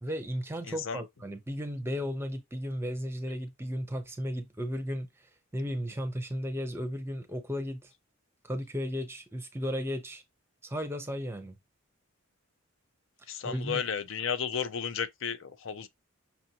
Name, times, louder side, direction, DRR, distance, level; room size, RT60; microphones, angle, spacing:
voice 1, 0.0-5.1 5.5-7.9 8.4-10.2 10.6-11.5 13.4-13.8, equal, 10° right, 0.6 m, -34 dB
voice 2, 0.7-1.0 13.3-15.9, left 7 dB, 60° left, 0.5 m, -33 dB
5.9 x 2.5 x 2.8 m
head